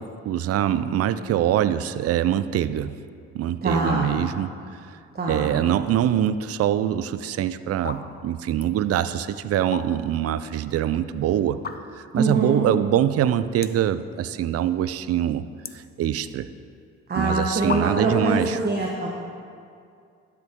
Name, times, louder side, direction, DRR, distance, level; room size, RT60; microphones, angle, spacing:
voice 1, 0.0-3.0 3.3-5.0 5.3-11.6 12.0-15.5 15.7-16.5 17.1-18.6, right 10 dB, 55° right, 13 dB, 0.5 m, -24 dB
voice 2, 3.6-4.2 5.1-5.6 12.1-12.7 17.1-19.1, right 2 dB, 35° right, -2 dB, 1.2 m, -24 dB
sound 1, 7.0-7.3 7.7-8.0 8.4-8.7 9.5-10.2 10.6-10.7 11.5-12.1 12.6-12.7 12.9-13.0 13.6-13.9 14.3-14.8 15.1-16.5 17.2-17.3 17.7-18.2, left 6 dB, 30° left, 0.6 m, -34 dB
12.0 x 6.9 x 3.7 m, 2.3 s
supercardioid pair, 65°, 30 cm